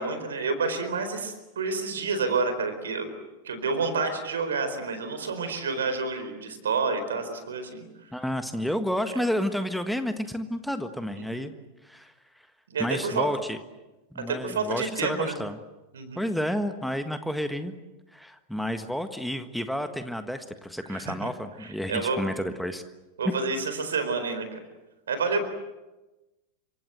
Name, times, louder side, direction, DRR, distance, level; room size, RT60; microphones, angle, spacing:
voice 1, 0.0-3.1 3.4-7.8 11.2-11.4 12.7-13.3 14.2-15.3 15.9-16.2 20.9-21.3 21.9-22.2 23.2-24.6 25.1-25.5, right 4 dB, 65° right, 9 dB, 4.3 m, -29 dB
voice 2, 8.1-11.5 11.8-12.1 12.8-13.6 14.1-15.6 16.1-17.7 18.1-22.8 23.2-23.3, equal, ahead, 9 dB, 1.5 m, -30 dB
28.0 x 25.0 x 8.0 m, 1.1 s
figure-of-eight pair, 90°, 0 cm